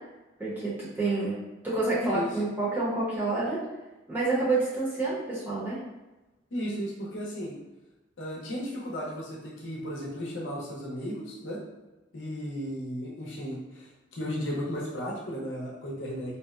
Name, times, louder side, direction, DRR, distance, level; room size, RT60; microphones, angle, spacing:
voice 1, 0.4-1.4 1.6-3.6 4.1-5.8, right 2 dB, 10° right, -9 dB, 0.7 m, -28 dB
voice 2, 6.5-7.5 8.2-11.6 12.1-16.4, equal, 70° left, -4 dB, 0.6 m, -35 dB
2.7 x 2.0 x 2.3 m, 1.1 s
head